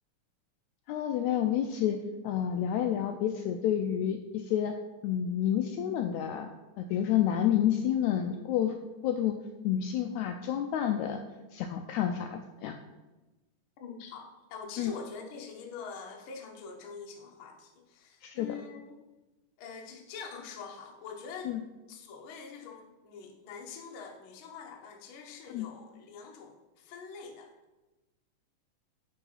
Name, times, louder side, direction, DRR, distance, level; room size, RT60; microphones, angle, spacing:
voice 1, 0.9-2.0 2.2-4.7 5.0-6.5 6.8-8.7 9.0-9.3 9.6-11.2 11.5-12.7 14.8-14.9 18.2-18.5 21.4-21.6 25.5-25.7, left 10 dB, 90° left, 5 dB, 1.6 m, -29 dB
voice 2, 13.8-19.0 19.6-21.5 21.9-27.5, left 5 dB, 70° left, 2 dB, 1.2 m, -45 dB
8.3 x 4.8 x 5.5 m, 1.1 s
omnidirectional pair, 3.9 m